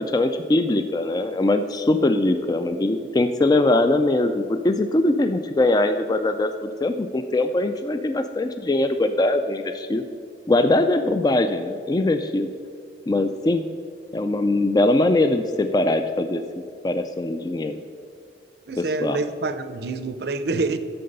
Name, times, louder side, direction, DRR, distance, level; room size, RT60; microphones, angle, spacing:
voice 1, 0.0-10.0 10.5-12.5 13.1-13.7 14.1-16.4 16.8-17.8 18.8-19.2, left 2 dB, 20° left, 8 dB, 0.3 m, -21 dB
voice 2, 18.7-20.8, right 3 dB, 60° right, 11 dB, 0.6 m, -27 dB
11.5 x 6.8 x 5.3 m, 2.3 s
head